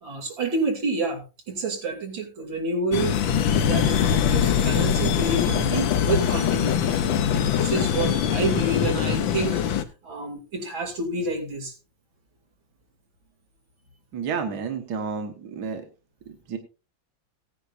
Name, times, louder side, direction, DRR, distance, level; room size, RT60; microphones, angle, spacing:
voice 1, 0.0-9.6 10.0-11.7, right 2 dB, 90° right, 2 dB, 3.6 m, -29 dB
sound 1, 2.9-9.8, left 8 dB, 85° left, 1.7 m, -23 dB
voice 2, 14.1-15.8 16.3-16.6, right 6 dB, 60° right, 6 dB, 1.8 m, -31 dB
17.0 x 9.8 x 2.6 m, 0.30 s
omnidirectional pair, 2.1 m